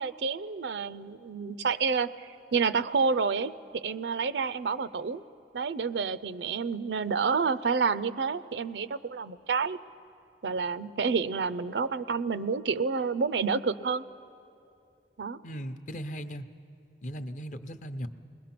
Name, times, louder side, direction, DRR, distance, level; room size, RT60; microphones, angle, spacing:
voice 1, 0.0-5.2 5.5-9.8 10.4-14.0 15.2-15.4, right 5 dB, 75° right, 16 dB, 0.5 m, -29 dB
voice 2, 15.4-16.4 17.0-18.1, equal, 45° left, 9 dB, 0.7 m, -37 dB
29.5 x 21.0 x 5.9 m, 2.6 s
head